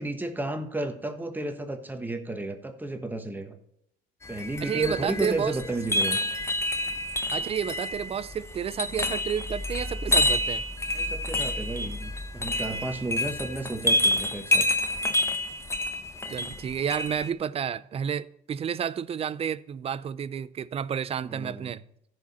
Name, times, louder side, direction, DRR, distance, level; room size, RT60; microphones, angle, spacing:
voice 1, 0.0-3.6 4.3-6.2 10.9-14.7 21.2-21.7, right 2 dB, 10° right, 1.3 m, -33 dB
sound 1, 4.2-17.3, left 1 dB, 15° left, 0.8 m, -28 dB
voice 2, 4.6-5.6 7.3-10.6 13.5-13.7 16.3-21.8, right 8 dB, 35° right, 0.5 m, -30 dB
15.0 x 5.0 x 4.1 m
cardioid pair, 110°, 17 cm